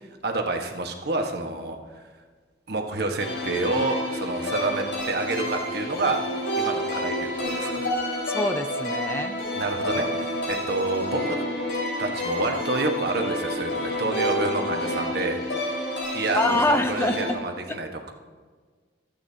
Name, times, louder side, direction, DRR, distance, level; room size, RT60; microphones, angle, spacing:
voice 1, 0.2-1.8 2.7-6.2 6.6-7.9 9.5-11.4 12.0-15.4 16.1-18.1, right 3 dB, 65° right, 3 dB, 1.4 m, -28 dB
sound 1, 3.2-17.3, left 1 dB, 85° left, 4.5 m, -29 dB
voice 2, 8.3-9.3 16.3-17.4, left 2 dB, 15° left, 9 dB, 0.5 m, -25 dB
24.5 x 8.8 x 2.8 m, 1.5 s
head